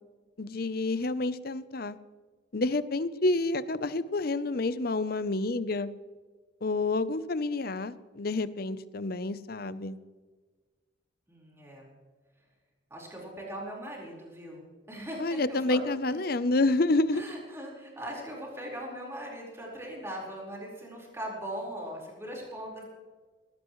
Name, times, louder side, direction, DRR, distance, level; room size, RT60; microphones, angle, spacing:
voice 1, 0.4-2.0 2.5-5.9 6.6-10.0 15.2-17.2, left 2 dB, 50° left, 14 dB, 0.7 m, -29 dB
voice 2, 11.3-11.9 12.9-14.6 14.9-15.8 16.1-16.2 17.1-22.8, equal, 15° right, -3 dB, 4.5 m, -40 dB
20.0 x 16.5 x 3.2 m, 1.4 s
head